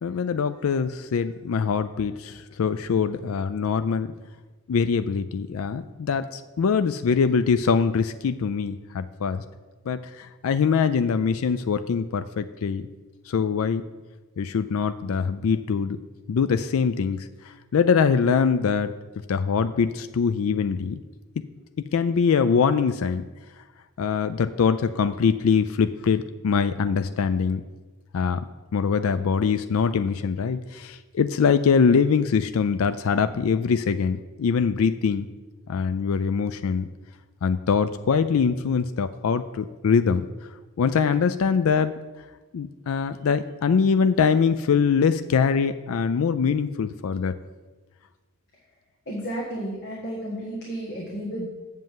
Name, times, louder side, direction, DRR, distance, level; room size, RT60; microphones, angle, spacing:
voice 1, 0.0-4.1 4.7-9.4 9.9-12.9 13.3-13.9 14.4-16.0 16.3-17.3 17.7-18.9 19.3-21.0 21.9-23.2 24.0-27.6 28.1-28.4 28.7-35.3 35.7-36.9 37.4-40.3 40.8-41.9 42.5-47.3, left 6 dB, 80° left, 11 dB, 0.4 m, -23 dB
voice 2, 49.0-51.5, right 1 dB, 50° left, -5 dB, 1.6 m, -32 dB
7.7 x 5.4 x 7.4 m, 1.2 s
head